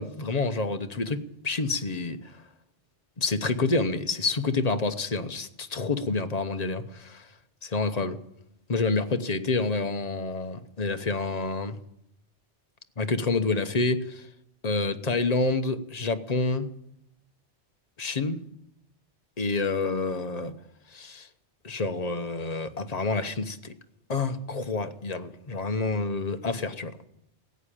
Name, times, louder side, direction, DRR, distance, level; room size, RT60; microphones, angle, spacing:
voice 1, 0.0-2.4 3.2-7.3 7.7-8.1 8.7-11.8 13.0-14.3 14.6-16.7 18.0-18.4 19.4-20.5 20.9-21.3 21.6-23.7 24.1-27.0, left 3 dB, 35° left, 1.0 m, -28 dB
16.5 x 8.9 x 9.9 m
omnidirectional pair, 1.2 m